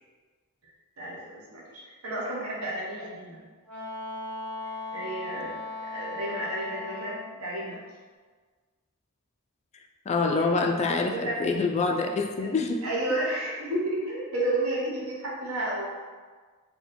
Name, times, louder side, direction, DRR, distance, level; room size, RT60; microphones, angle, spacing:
voice 1, 1.0-3.4 4.9-5.6 5.9-7.8 10.4-10.5 10.9-11.4 12.8-15.9, right 1 dB, 85° right, -5 dB, 1.2 m, -31 dB
Wind instrument woodwind instrument, 3.6-7.3, left 2 dB, 10° left, 1.4 m, -37 dB
voice 2, 10.1-12.8, left 3 dB, 30° left, 3 dB, 0.3 m, -26 dB
4.3 x 2.2 x 4.2 m, 1.5 s
head